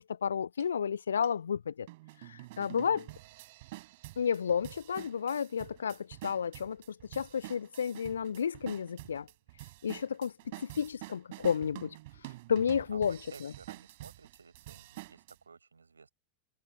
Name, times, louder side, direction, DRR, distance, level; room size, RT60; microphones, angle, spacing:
voice 1, 0.1-1.9 2.2-3.1 4.2-9.3 9.8-10.3 10.6-12.0 12.5-13.5, left 7 dB, 70° left, 0.3 m, -32 dB
sound 1, 0.6-0.7 1.2-1.3 1.9-15.4, right 20 dB, 50° right, 4.0 m, -48 dB
voice 2, 12.9-16.1, right 5 dB, 75° right, 4.7 m, -54 dB
figure-of-eight pair, 90°, 0 cm